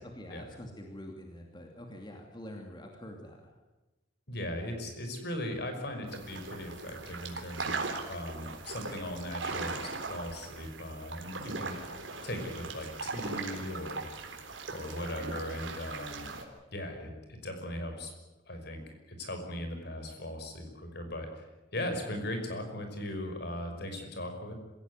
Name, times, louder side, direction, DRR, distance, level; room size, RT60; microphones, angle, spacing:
voice 1, 0.0-3.6, left 1 dB, 25° left, 2 dB, 2.7 m, -46 dB
voice 2, 4.3-7.8 8.1-14.4 14.7-16.4 16.7-18.1 18.5-18.8 19.1-24.5, left 1 dB, 60° left, 5 dB, 5.5 m, -38 dB
sound 1, 6.1-16.4, right 3 dB, 90° right, 3.7 m, -39 dB
26.5 x 16.5 x 9.6 m, 1.1 s
head